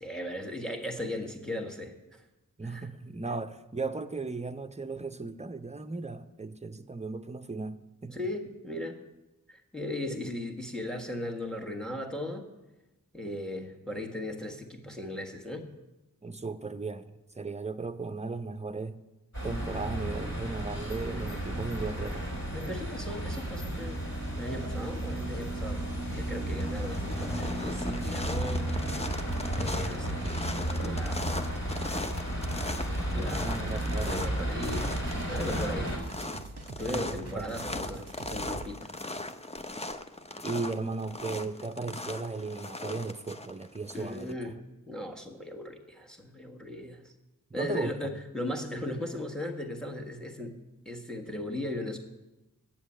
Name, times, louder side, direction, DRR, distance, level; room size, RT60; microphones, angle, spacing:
voice 1, 0.0-2.2 2.6-2.9 8.1-9.0 9.5-12.4 13.1-15.7 22.5-24.0 24.4-25.8 26.1-28.7 29.5-31.3 33.1-34.9 35.3-35.9 36.8-38.9 43.9-44.6 44.9-47.1 47.5-50.6 50.9-52.0, left 1 dB, ahead, 2 dB, 1.7 m, -37 dB
voice 2, 2.6-8.2 16.2-19.0 19.4-22.3 33.4-34.4 36.9-37.5 37.7-37.8 40.4-44.6 47.5-48.1, right 3 dB, 20° right, 8 dB, 0.6 m, -36 dB
sound 1, 19.3-36.0, right 1 dB, 50° left, 4.3 m, -33 dB
sound 2, 25.8-26.1 26.4-44.3, left 2 dB, 20° left, 0.6 m, -39 dB
sound 3, 33.6-38.7, right 3 dB, 45° right, 1.0 m, -44 dB
9.1 x 7.2 x 8.6 m, 1.1 s
wide cardioid pair, 45°, 34 cm